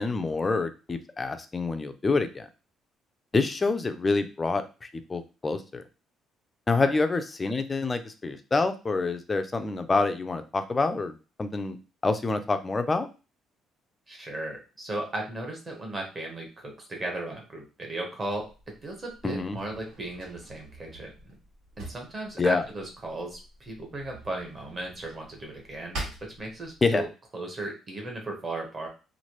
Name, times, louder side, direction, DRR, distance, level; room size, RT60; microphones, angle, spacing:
voice 1, 0.0-2.5 3.3-5.8 6.7-11.8 12.0-13.1 19.2-19.6 22.4-22.6 26.8-27.0, left 3 dB, 15° left, 9 dB, 0.3 m, -27 dB
voice 2, 14.1-18.5 18.8-21.1 21.8-27.1 27.3-28.9, right 2 dB, 20° right, 1 dB, 0.8 m, -36 dB
Drawer open or close, 18.4-27.1, right 2 dB, 75° right, 1.7 m, -45 dB
3.1 x 2.5 x 2.8 m, 0.32 s
cardioid pair, 175°, 0 cm